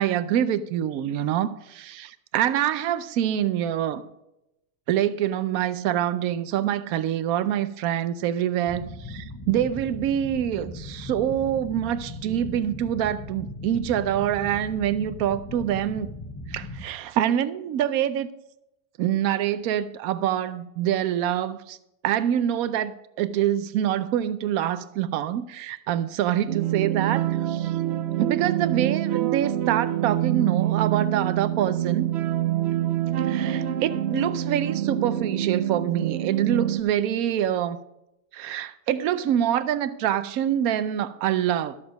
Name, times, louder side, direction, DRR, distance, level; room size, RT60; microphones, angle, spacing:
voice 1, 0.0-4.0 4.9-16.1 16.5-18.3 19.0-21.8 22.0-22.9 23.2-27.7 28.2-32.1 33.2-37.8 38.3-41.8, right 10 dB, 85° right, 1.1 m, -25 dB
sound 1, 8.7-16.8, left 2 dB, 20° left, 0.8 m, -38 dB
sound 2, 26.5-36.8, right 12 dB, 60° right, 0.7 m, -26 dB
13.0 x 7.1 x 5.1 m
omnidirectional pair, 1.5 m